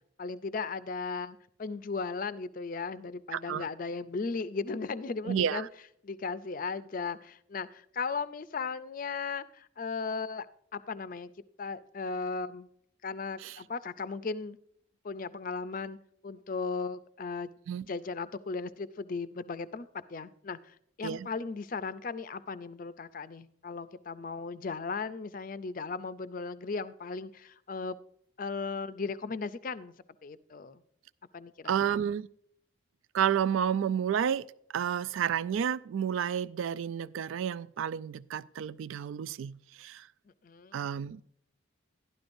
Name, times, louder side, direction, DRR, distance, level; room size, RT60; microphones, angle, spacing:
voice 1, 0.2-5.7 6.0-10.5 10.7-11.3 11.6-12.7 13.0-14.6 15.0-16.0 16.2-17.5 17.9-28.0 28.4-29.9 30.2-30.8 31.3-32.0 40.4-40.8, left 4 dB, 40° left, 0.4 m, -36 dB
voice 2, 3.3-3.6 5.2-5.7 13.4-13.5 17.7-17.8 21.0-21.3 31.7-32.3 33.1-34.5 34.7-40.1 40.7-41.2, right 8 dB, 75° right, 0.3 m, -30 dB
12.0 x 11.5 x 2.6 m
head